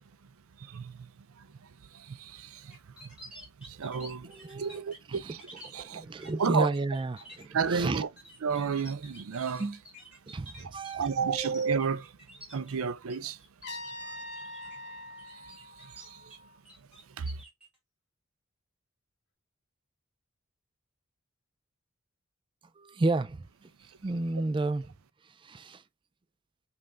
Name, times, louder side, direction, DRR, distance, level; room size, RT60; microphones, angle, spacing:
voice 1, 0.6-3.2 3.6-5.4 5.7-6.7 7.5-8.1 8.4-9.7 10.6-12.2 12.5-13.4 15.3-16.4 17.2-17.4, right 5 dB, 85° right, 0.5 m, -33 dB
sound 1, 2.7-5.7 6.2-6.4 6.7-13.2 13.4-13.9 14.4-14.8 15.2-16.4 16.7-17.7, right 1 dB, 5° right, 1.9 m, -50 dB
voice 2, 4.2-5.4 5.6-8.0 9.6-9.8 10.3-11.5 22.8-24.9 25.3-25.8, right 2 dB, 25° right, 0.3 m, -32 dB
Trumpet, 13.6-16.6, left 1 dB, 55° left, 0.9 m, -43 dB
5.3 x 2.6 x 3.4 m
head